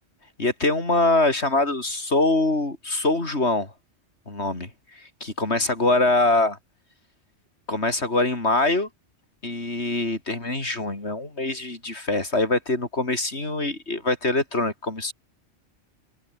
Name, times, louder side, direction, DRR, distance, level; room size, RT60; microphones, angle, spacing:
voice 1, 0.4-3.7 4.3-6.6 7.7-8.9 9.4-15.1, left 2 dB, 65° left, 4.7 m, -24 dB
omnidirectional pair, 1.2 m